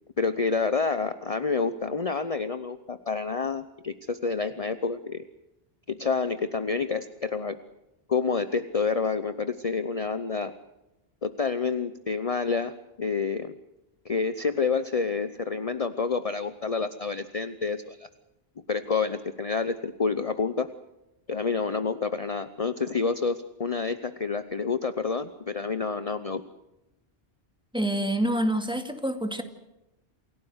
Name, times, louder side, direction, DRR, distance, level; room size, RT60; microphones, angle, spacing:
voice 1, 0.2-5.2 5.9-7.6 8.1-10.5 11.2-13.5 14.0-18.1 18.7-20.7 21.3-26.4, left 4 dB, 35° left, 11 dB, 0.9 m, -28 dB
voice 2, 27.7-29.4, right 1 dB, 5° right, 6 dB, 2.2 m, -27 dB
28.0 x 17.0 x 8.1 m, 0.94 s
omnidirectional pair, 1.0 m